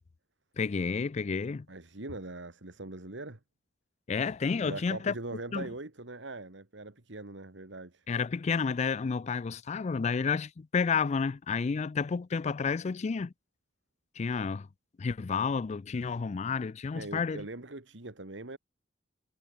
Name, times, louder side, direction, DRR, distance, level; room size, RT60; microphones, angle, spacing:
voice 1, 0.6-1.7 4.1-5.1 5.5-5.7 8.1-13.3 14.2-14.7 15.0-17.5, left 5 dB, 35° left, 0.4 m, -30 dB
voice 2, 1.7-3.4 4.6-8.1 16.9-18.6, right 2 dB, 75° right, 2.0 m, -41 dB
head